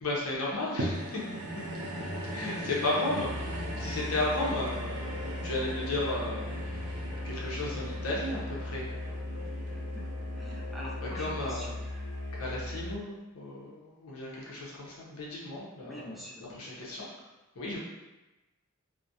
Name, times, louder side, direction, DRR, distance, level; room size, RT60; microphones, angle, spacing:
voice 1, 0.0-1.2 2.3-6.4 7.2-8.9 11.0-11.7 12.4-16.2 16.6-17.0 17.6-17.8, left 2 dB, 75° left, -5 dB, 0.7 m, -34 dB
sound 1, 0.8-11.3 11.9-12.0, right 1 dB, 90° right, 0.5 m, -40 dB
Musical instrument, 3.1-13.0, left 1 dB, 45° left, 1.3 m, -38 dB
sound 2, 3.7-11.7, equal, 30° right, 0.7 m, -48 dB
voice 2, 9.4-10.1 10.3-11.7 15.8-16.6, left 1 dB, ahead, -5 dB, 0.4 m, -45 dB
2.4 x 2.0 x 2.7 m, 1.1 s
head